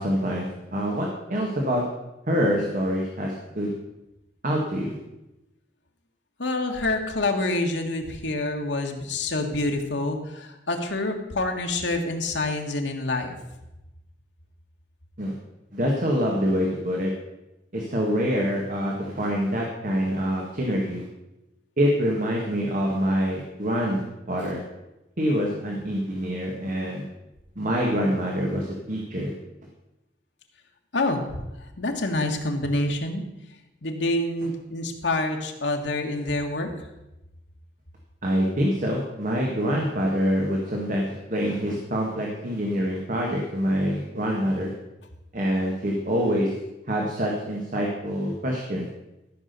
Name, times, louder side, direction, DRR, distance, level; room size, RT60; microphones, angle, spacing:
voice 1, 0.0-1.8 2.3-3.7 4.4-5.0 15.2-15.3 15.7-17.1 17.7-21.0 21.8-24.6 25.2-27.0 27.5-29.3 38.2-44.7 45.3-46.5 46.9-48.9, equal, 50° right, -1 dB, 1.8 m, -25 dB
voice 2, 6.4-13.3 30.9-31.4 31.8-33.2 33.8-36.7, left 2 dB, 85° left, 3 dB, 1.7 m, -27 dB
13.5 x 6.2 x 6.8 m, 0.95 s
head